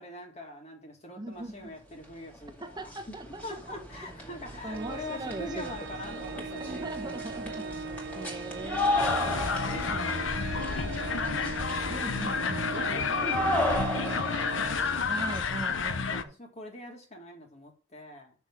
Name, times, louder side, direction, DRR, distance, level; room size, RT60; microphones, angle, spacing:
voice 1, 0.0-3.1 3.4-8.3 9.2-11.5 12.4-14.9 16.0-18.3, left 1 dB, 35° left, 2.3 m, -44 dB
voice 2, 1.2-1.7 2.6-3.6 4.6-5.7 6.1-6.2 6.6-7.7 8.1-10.1 11.9-12.9 15.0-16.3, right 1 dB, 20° right, 1.2 m, -40 dB
sound 1, 2.3-2.4 2.7-15.4, left 1 dB, 5° left, 2.3 m, -35 dB
Organ, 4.7-15.5, right 4 dB, 60° right, 0.5 m, -39 dB
sound 2, 9.0-16.2, left 5 dB, 70° left, 0.8 m, -30 dB
6.4 x 6.1 x 7.4 m
head